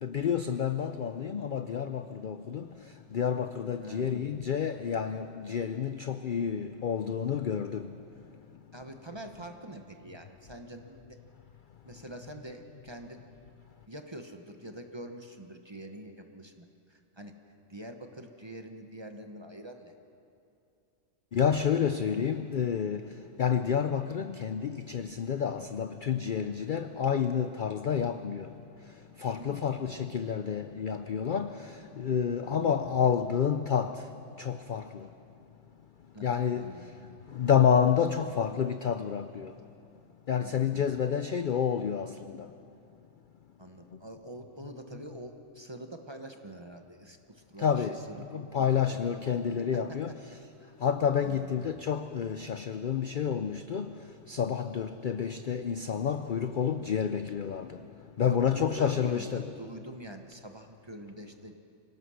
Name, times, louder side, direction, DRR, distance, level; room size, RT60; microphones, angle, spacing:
voice 1, 0.0-2.7 3.1-7.9 21.3-23.0 23.4-28.5 29.2-33.9 34.4-35.1 36.2-36.7 37.3-39.5 40.3-42.1 47.6-48.0 48.3-50.1 50.8-53.9 54.3-57.8 58.2-59.4, left 7 dB, 55° left, 10 dB, 0.6 m, -29 dB
voice 2, 3.8-4.1 8.7-11.2 11.8-13.3 13.9-17.3 17.7-20.0 29.3-29.7 32.4-32.6 36.1-36.9 40.4-40.7 43.6-48.7 49.7-50.1 51.2-51.5 58.2-61.6, right 1 dB, 20° right, 5 dB, 1.1 m, -45 dB
25.0 x 17.5 x 6.4 m, 2.6 s
omnidirectional pair, 1.4 m